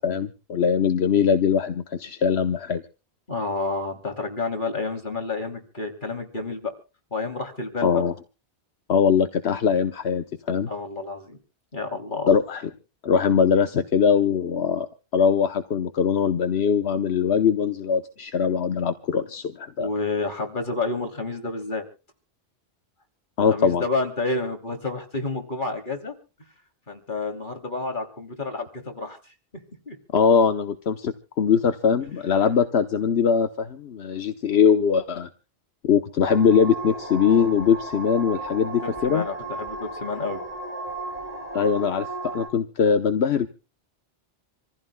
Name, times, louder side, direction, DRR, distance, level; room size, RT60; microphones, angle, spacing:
voice 1, 0.0-2.8 7.8-8.1 8.9-10.7 12.3-12.7 13.0-14.9 15.1-19.9 23.4-23.8 30.1-35.3 35.8-39.2 41.5-43.5, left 6 dB, 80° left, 8 dB, 1.2 m, -21 dB
voice 2, 3.3-6.7 7.1-8.0 10.7-11.4 11.7-12.3 19.8-21.8 23.5-26.1 26.9-29.2 29.9-30.0 38.8-40.4, left 3 dB, 50° left, 4 dB, 3.2 m, -29 dB
sound 1, 36.2-42.5, right 2 dB, 35° right, 5.4 m, -35 dB
27.0 x 15.0 x 2.2 m, 0.35 s
omnidirectional pair, 1.1 m